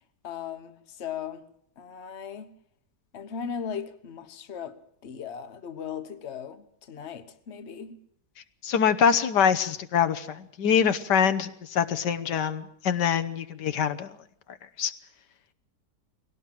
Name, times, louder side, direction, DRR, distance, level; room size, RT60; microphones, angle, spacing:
voice 1, 0.2-1.5 1.8-2.5 3.1-8.0, left 7 dB, 45° left, 1.4 m, -38 dB
voice 2, 8.6-14.2 14.8-14.9, left 7 dB, 85° left, 1.7 m, -24 dB
21.5 x 18.0 x 7.6 m
omnidirectional pair, 1.8 m